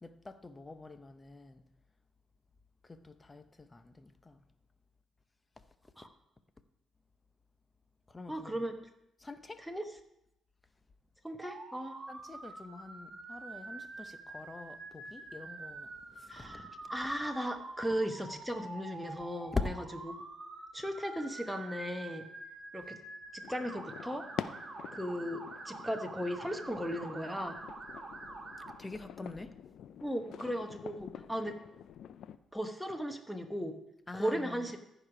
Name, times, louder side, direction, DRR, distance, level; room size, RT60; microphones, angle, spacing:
voice 1, 0.0-1.6 2.9-4.4 8.1-8.5 9.2-9.6 12.1-15.9 16.2-16.7 19.5-19.7 28.8-29.5 34.1-34.8, left 3 dB, 20° left, 11 dB, 0.7 m, -43 dB
voice 2, 8.3-8.8 9.6-9.9 11.2-12.0 16.3-19.8 20.0-20.3 20.7-22.3 22.7-23.0 23.3-24.3 24.9-27.6 30.0-31.6 32.5-33.8 34.1-34.8, equal, ahead, 5 dB, 1.1 m, -37 dB
Motor vehicle (road) / Siren, 11.4-28.7, right 3 dB, 30° right, 2.4 m, -47 dB
sound 1, 23.4-32.4, left 9 dB, 70° left, 0.4 m, -47 dB
14.5 x 5.0 x 5.0 m, 0.83 s
cardioid pair, 90°, 0 cm